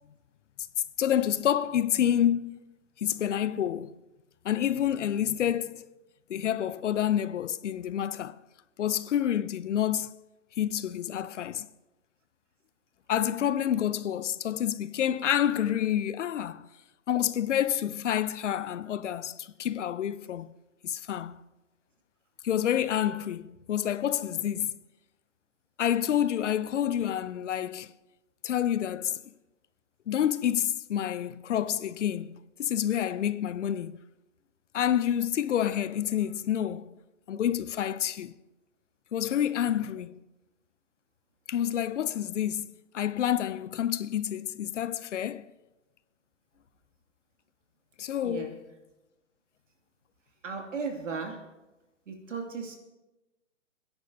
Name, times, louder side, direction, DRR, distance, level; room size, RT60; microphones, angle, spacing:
voice 1, 1.0-2.6 3.0-3.9 4.4-5.8 6.3-8.4 8.8-10.1 10.6-11.7 13.1-16.7 17.1-20.5 20.8-21.4 22.4-24.7 25.8-27.9 28.4-29.2 30.1-34.0 34.7-36.9 37.3-38.3 39.1-40.2 41.5-42.7 42.9-45.5 48.0-48.6, left 10 dB, 70° left, 0.7 m, -28 dB
voice 2, 50.4-51.4 52.1-52.8, right 5 dB, 75° right, 2.6 m, -35 dB
27.5 x 10.5 x 2.8 m
hypercardioid pair, 140°, 38 cm